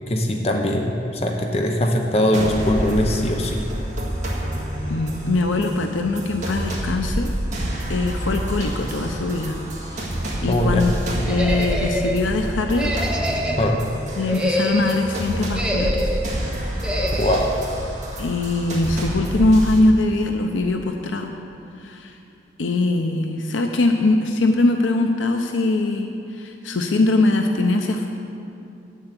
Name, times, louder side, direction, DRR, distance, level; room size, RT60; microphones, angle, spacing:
voice 1, 0.1-3.6 10.5-10.8 13.6-13.8 17.1-17.5, left 1 dB, 35° left, 2 dB, 0.8 m, -21 dB
sound 1, 2.3-19.8, right 1 dB, 40° right, 2.0 m, -28 dB
voice 2, 4.9-7.3 7.9-9.6 9.9-10.1 10.4-10.9 11.3-12.9 14.2-16.1 18.2-21.3 21.8-22.2 22.6-28.1, left 2 dB, 90° left, 4 dB, 0.6 m, -21 dB
sound 2, 11.3-12.2 12.7-13.7 14.2-15.0 15.5-16.3 16.8-17.5, equal, 5° right, 0.8 m, -26 dB
8.9 x 7.4 x 8.2 m, 2.6 s
head